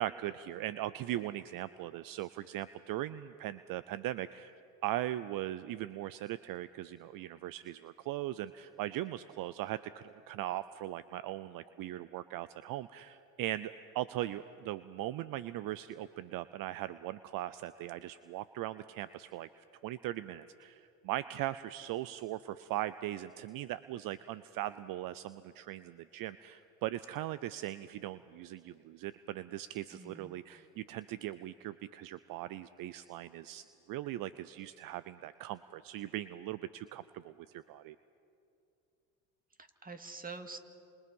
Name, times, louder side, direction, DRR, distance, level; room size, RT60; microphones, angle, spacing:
voice 1, 0.0-4.5 4.8-38.0, right 14 dB, 55° right, 15 dB, 0.7 m, -39 dB
voice 2, 29.9-30.4 39.6-40.6, right 4 dB, 20° right, 7 dB, 2.3 m, -46 dB
29.5 x 27.5 x 5.5 m, 2.7 s
hypercardioid pair, 75°, 41 cm